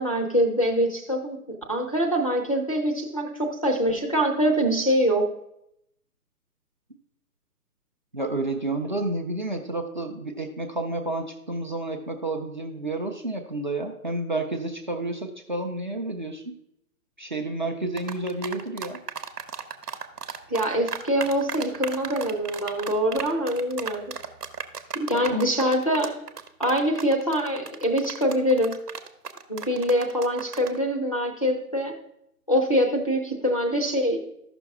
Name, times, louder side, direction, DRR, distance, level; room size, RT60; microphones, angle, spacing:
voice 1, 0.0-1.4 1.7-5.3 20.5-24.0 24.9-26.2 26.6-28.8 29.5-31.9 32.5-34.2, equal, 25° left, 3 dB, 0.5 m, -24 dB
voice 2, 8.1-16.5 17.2-19.0 25.1-25.4, right 2 dB, 30° right, 3 dB, 0.5 m, -30 dB
sound 1, 18.0-30.8, right 6 dB, 75° right, 1.0 m, -35 dB
13.5 x 6.0 x 3.5 m, 0.79 s
figure-of-eight pair, 145°, 48 cm